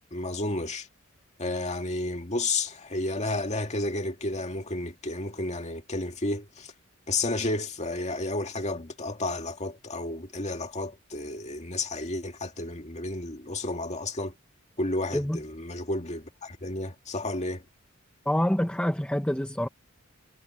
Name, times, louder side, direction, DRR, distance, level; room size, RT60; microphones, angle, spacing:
voice 1, 0.1-0.9 1.4-6.7 7.1-14.3 14.8-17.6, left 2 dB, 35° left, 2.2 m, -31 dB
voice 2, 18.3-19.7, equal, 5° left, 0.8 m, -26 dB
head